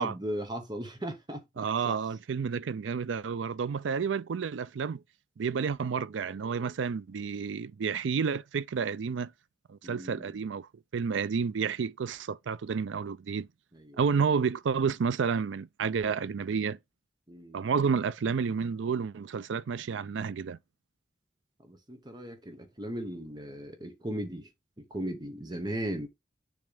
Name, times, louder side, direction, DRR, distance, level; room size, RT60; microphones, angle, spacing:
voice 1, 0.0-1.4 1.8-2.0 9.8-10.4 13.7-14.0 17.3-17.6 21.6-24.5 24.8-26.1, right 1 dB, 25° right, 1.1 m, -37 dB
voice 2, 1.6-5.0 5.4-9.3 9.7-13.5 14.0-16.8 17.5-20.6, right 6 dB, 80° right, 0.4 m, -30 dB
7.0 x 3.2 x 5.0 m
head